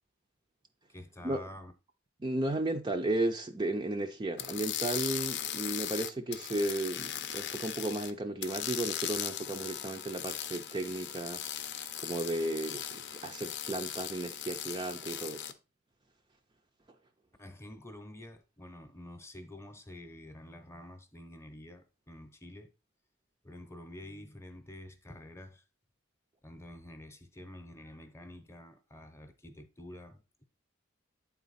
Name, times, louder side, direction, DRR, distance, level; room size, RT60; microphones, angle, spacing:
voice 1, 0.9-1.7 17.4-22.7 23.4-25.6 26.4-30.4, left 1 dB, 15° left, 0.8 m, -48 dB
voice 2, 2.2-11.4 12.0-15.5, right 1 dB, 20° right, 0.4 m, -34 dB
sound 1, 4.4-8.1 8.4-15.5, left 10 dB, 55° left, 0.6 m, -38 dB
9.0 x 4.1 x 4.1 m
head